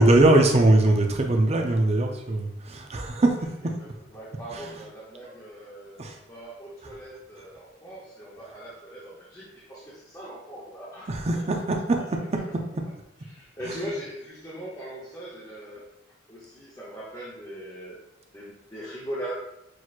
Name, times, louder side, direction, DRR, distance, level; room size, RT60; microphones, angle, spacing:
voice 1, 0.0-3.4 4.5-4.9 6.0-6.2 11.1-12.4 13.6-13.9, right 2 dB, 35° right, 3 dB, 0.5 m, -21 dB
voice 2, 3.8-12.2 13.3-15.9 16.3-18.0 18.3-19.3, equal, 20° left, -7 dB, 0.8 m, -40 dB
6.2 x 2.9 x 2.4 m, 0.84 s
head